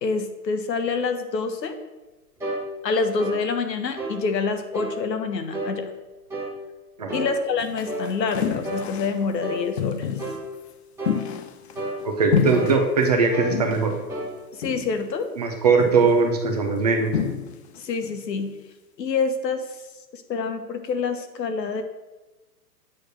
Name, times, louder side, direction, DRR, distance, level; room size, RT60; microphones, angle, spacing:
voice 1, 0.0-1.8 2.8-5.9 7.1-10.1 14.5-15.3 17.7-18.6 19.0-19.6 20.1-21.8, left 4 dB, 80° left, 7 dB, 1.2 m, -26 dB
sound 1, 2.4-2.6 3.2-3.4 4.0-4.2 4.7-5.0 5.5-5.8 6.3-6.6 7.1-7.3 7.9-8.1 8.6-8.9 9.4-9.7 10.2-10.4 11.0-11.2 11.8-12.0 12.5-12.8 13.3-13.6 14.1-14.3, right 1 dB, 5° right, 1.1 m, -31 dB
sound 2, 7.6-9.3 9.8-10.4 11.0-12.0 12.3-13.1 13.5-14.0 14.6-15.1 15.8-16.2 17.1-17.8 18.0-18.2, left 8 dB, 45° left, 0.4 m, -28 dB
voice 2, 12.0-13.9 15.4-17.2, right 4 dB, 25° right, 3 dB, 0.4 m, -20 dB
8.4 x 3.2 x 6.4 m, 1.1 s
hypercardioid pair, 145°, 49 cm